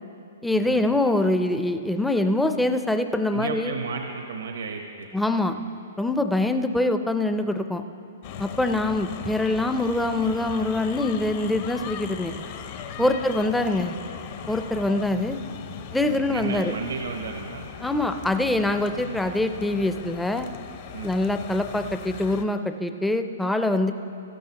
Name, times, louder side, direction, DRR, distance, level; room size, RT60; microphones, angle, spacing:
voice 1, 0.4-3.7 5.1-5.6 6.0-7.8 8.4-12.4 13.0-13.9 14.5-15.4 15.9-16.7 17.8-20.5 21.0-23.9, left 2 dB, 5° left, 7 dB, 0.4 m, -24 dB
voice 2, 3.3-5.4 13.0-13.2 16.0-17.7 20.9-21.1, right 5 dB, 85° right, 4 dB, 0.9 m, -33 dB
sound 1, 8.2-22.4, left 8 dB, 45° left, 0.6 m, -38 dB
17.0 x 13.0 x 2.9 m, 2.6 s
hypercardioid pair, 155°, 0 cm